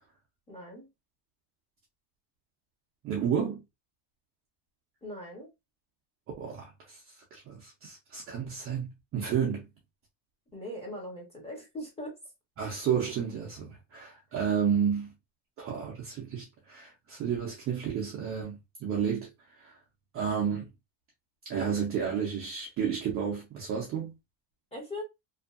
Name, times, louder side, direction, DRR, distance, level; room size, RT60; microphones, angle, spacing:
voice 1, 0.5-0.9 5.0-5.5 10.5-12.2 24.7-25.0, left 1 dB, 15° left, 0.7 m, -40 dB
voice 2, 3.0-3.6 6.4-9.7 12.6-15.1 15.6-19.8 20.1-20.7 21.4-24.1, right 7 dB, 30° right, 0.3 m, -31 dB
2.6 x 2.3 x 2.3 m
cardioid pair, 175°, 48 cm